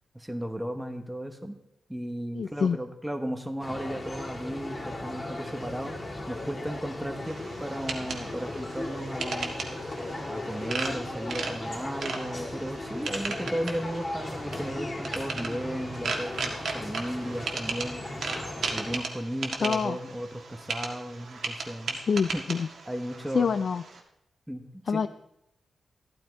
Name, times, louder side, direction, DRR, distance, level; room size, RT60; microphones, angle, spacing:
voice 1, 0.1-1.6 1.9-6.0 6.3-9.6 10.3-18.0 18.7-22.0 22.3-22.4 22.9-23.5 24.5-24.6 24.9-25.1, equal, 5° right, 6 dB, 1.1 m, -35 dB
voice 2, 2.3-2.8 19.6-20.0 22.1-22.7 23.3-23.8 24.9-25.1, left 6 dB, 50° left, 11 dB, 0.4 m, -26 dB
sound 1, 3.6-19.0, left 1 dB, 25° left, 2.4 m, -37 dB
sound 2, 7.3-24.0, right 4 dB, 60° right, 1.7 m, -37 dB
14.0 x 12.0 x 4.6 m, 0.80 s
wide cardioid pair, 175°, 0 cm